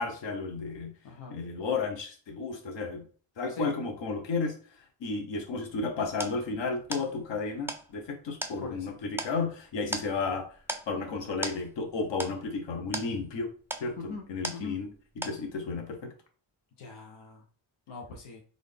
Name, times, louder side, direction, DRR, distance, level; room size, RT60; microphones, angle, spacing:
voice 1, 0.0-0.9 1.3-3.0 3.4-4.5 5.0-10.5 10.9-13.5 13.8-16.0, left 4 dB, 65° left, 4 dB, 1.1 m, -33 dB
voice 2, 1.0-1.4 3.5-3.7 8.6-9.0 14.0-14.2 14.5-14.7 16.8-17.4 17.9-18.4, left 3 dB, 90° left, 1 dB, 0.9 m, -42 dB
sound 1, 5.5-15.0 15.2-15.8, right 2 dB, 5° right, 0.4 m, -40 dB
3.9 x 2.6 x 3.4 m, 0.40 s
cardioid pair, 85°, 47 cm